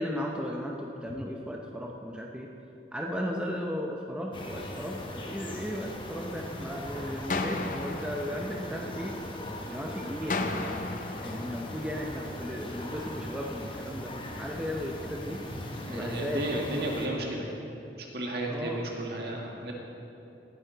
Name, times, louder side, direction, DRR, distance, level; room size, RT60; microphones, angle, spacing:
voice 1, 0.0-2.5 2.9-9.1 9.7-10.9 11.2-14.1 14.4-15.4 15.9-16.7 18.5-18.8, equal, 5° right, -1 dB, 0.7 m, -35 dB
sound 1, 4.3-17.1, left 1 dB, 25° left, 1.1 m, -40 dB
sound 2, 7.3-9.4 10.3-12.4, left 3 dB, 45° left, 0.6 m, -35 dB
voice 2, 15.9-17.6 18.1-19.7, right 1 dB, 60° right, -1 dB, 1.8 m, -33 dB
18.5 x 9.2 x 3.9 m, 2.9 s
head